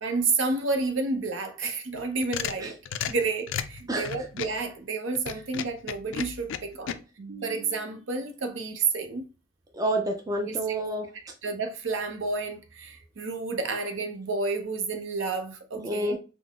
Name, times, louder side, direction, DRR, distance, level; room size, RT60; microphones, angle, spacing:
voice 1, 0.0-2.8 3.1-9.2 10.5-10.6 11.4-16.2, right 3 dB, 65° right, 0.7 m, -30 dB
sound 1, 1.9-4.6 5.1-7.0, left 8 dB, 65° left, 0.3 m, -34 dB
voice 2, 3.9-4.3 9.7-11.1 15.8-16.2, right 1 dB, 15° right, 0.4 m, -29 dB
3.8 x 2.0 x 3.5 m
head